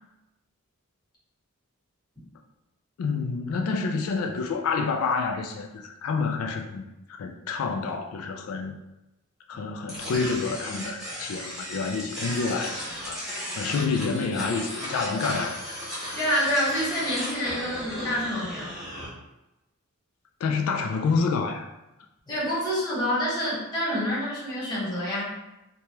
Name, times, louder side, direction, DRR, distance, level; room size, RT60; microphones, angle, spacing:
voice 1, 3.0-6.8 7.2-8.8 9.5-13.2 13.6-15.7 20.4-21.7, left 4 dB, 70° left, 3 dB, 0.3 m, -28 dB
sound 1, 9.9-19.1, equal, ahead, 1.0 m, -35 dB
voice 2, 16.1-18.7 22.3-25.3, equal, 20° left, -9 dB, 1.3 m, -27 dB
3.2 x 2.2 x 2.8 m, 0.96 s
head